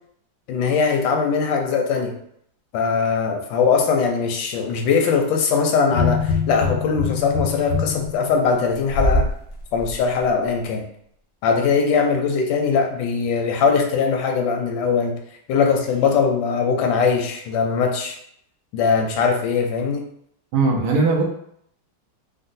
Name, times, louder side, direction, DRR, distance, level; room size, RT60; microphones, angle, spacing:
voice 1, 0.5-2.2 2.7-9.3 9.7-10.8 11.4-15.2 15.5-18.2 18.7-20.0, left 5 dB, 90° left, 3 dB, 1.4 m, -21 dB
sound 1, 5.9-9.3 9.8-9.9, left 3 dB, 65° left, 0.7 m, -23 dB
voice 2, 20.5-21.2, right 3 dB, 70° right, -1 dB, 1.2 m, -18 dB
3.8 x 2.1 x 2.6 m, 0.68 s
omnidirectional pair, 2.0 m